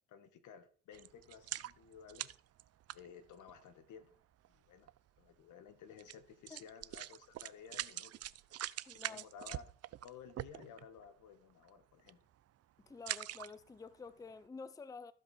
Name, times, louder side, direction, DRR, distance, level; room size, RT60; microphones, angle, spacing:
voice 1, 0.1-2.3 2.9-4.2 4.5-4.9 5.2-9.6 10.0-12.2, left 7 dB, 80° left, 1.4 m, -55 dB
sound 1, 0.9-3.6 4.4-4.5 4.9-5.0 6.0-6.2 6.5-11.0 11.5-11.7 12.0-12.3 12.9-13.8 14.3-14.4, right 13 dB, 55° right, 0.5 m, -44 dB
voice 2, 8.9-9.3 12.8-15.1, left 4 dB, 10° left, 0.5 m, -50 dB
15.0 x 5.1 x 4.2 m
cardioid pair, 90°, 30 cm